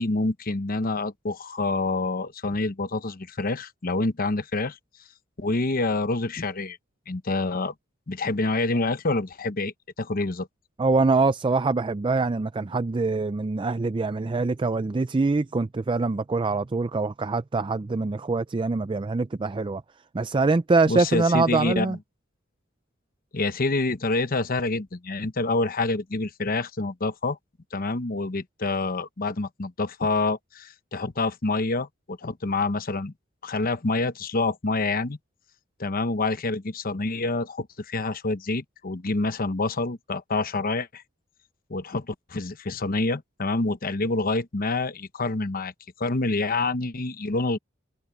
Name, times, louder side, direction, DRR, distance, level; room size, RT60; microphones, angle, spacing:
voice 1, 0.0-4.8 5.4-6.8 7.1-7.7 8.1-10.5 20.9-22.0 23.3-27.4 27.7-33.1 33.4-35.2 35.8-41.0 41.7-45.7 46.0-47.6, left 3 dB, 45° left, 0.9 m, -27 dB
voice 2, 10.8-19.8 20.1-22.0, right 3 dB, 25° right, 0.4 m, -24 dB
head